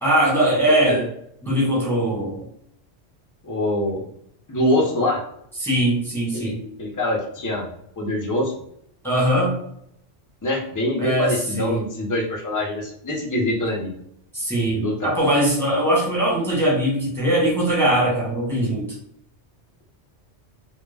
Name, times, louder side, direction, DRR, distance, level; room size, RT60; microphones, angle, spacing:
voice 1, 0.0-1.0 1.4-2.4 5.6-6.6 9.0-9.6 11.0-11.8 14.3-18.8, right 1 dB, ahead, -5 dB, 1.0 m, -21 dB
voice 2, 0.7-1.1 3.4-4.1 4.5-5.2 6.3-7.7 8.0-8.5 10.4-13.9 14.7-15.1, left 1 dB, 30° left, 0 dB, 0.3 m, -24 dB
2.2 x 2.1 x 3.3 m, 0.71 s
omnidirectional pair, 1.2 m